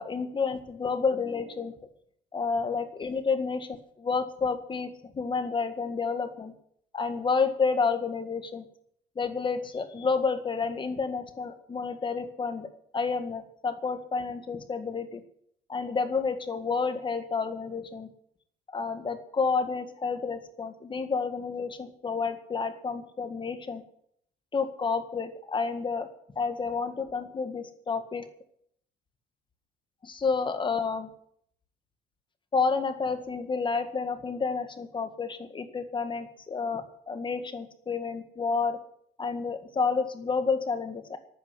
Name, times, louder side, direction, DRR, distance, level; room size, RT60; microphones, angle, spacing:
voice 1, 0.0-1.7 2.3-3.7 4.0-6.5 6.9-8.6 9.2-15.2 15.7-18.1 18.7-23.8 24.5-26.1 26.4-28.3 30.0-31.1 32.5-38.8 39.2-41.2, left 5 dB, 30° left, 8 dB, 1.8 m, -30 dB
12.0 x 9.0 x 9.6 m, 0.70 s
cardioid pair, 110°, 17 cm